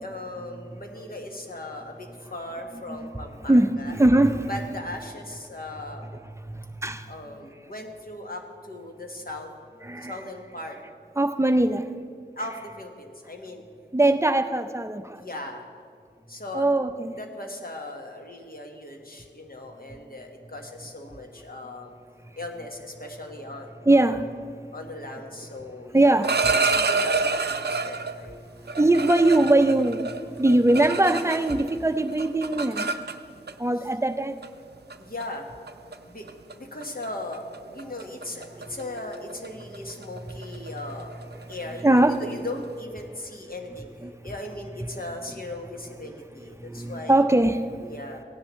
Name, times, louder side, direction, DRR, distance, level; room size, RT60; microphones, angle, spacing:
voice 1, 0.0-3.9 4.5-6.1 7.1-9.5 10.1-10.8 12.4-13.6 14.0-14.1 15.1-15.7 16.3-16.7 17.2-22.0 22.3-24.2 24.7-26.1 26.6-28.5 35.0-35.5 36.0-36.3 36.5-37.4 37.7-41.2 41.5-43.9 44.2-47.2 47.9-48.2, left 1 dB, 55° left, 2 dB, 1.4 m, -38 dB
voice 2, 3.5-4.5 6.3-7.1 9.8-10.2 11.2-11.9 13.9-15.2 16.5-17.2 19.9-20.0 22.2-22.4 23.8-24.3 25.9-26.5 27.7-27.8 28.4-32.9 33.6-34.4 38.7-38.8 41.8-42.2 44.0-44.3 46.0-46.1 46.6-47.9, right 1 dB, 15° right, 9 dB, 0.5 m, -22 dB
sound 1, 26.0-28.2 28.7-31.7 32.0-33.5 34.4-34.6 34.9-35.2 35.7-35.9 36.3-36.5 36.8-37.1 37.3-42.7, right 4 dB, 65° right, 0.5 m, -28 dB
16.5 x 10.5 x 3.1 m, 2.2 s
wide cardioid pair, 50°, 18 cm